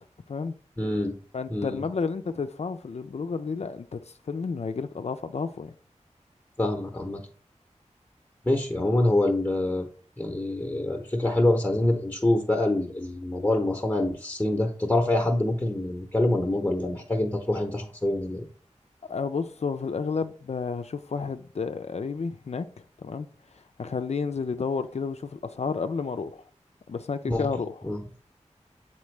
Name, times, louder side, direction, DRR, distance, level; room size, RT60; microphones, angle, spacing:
voice 1, 0.8-1.1 1.5-1.8 6.6-7.2 8.4-9.9 10.2-18.5 27.3-27.5 27.8-28.0, left 1 dB, 15° left, 0.9 m, -25 dB
voice 2, 1.3-4.0 4.3-5.7 19.1-22.7 23.0-23.3 23.8-26.4 26.9-27.8, left 5 dB, 60° left, 0.4 m, -31 dB
7.1 x 4.3 x 3.2 m
wide cardioid pair, 55°, 12 cm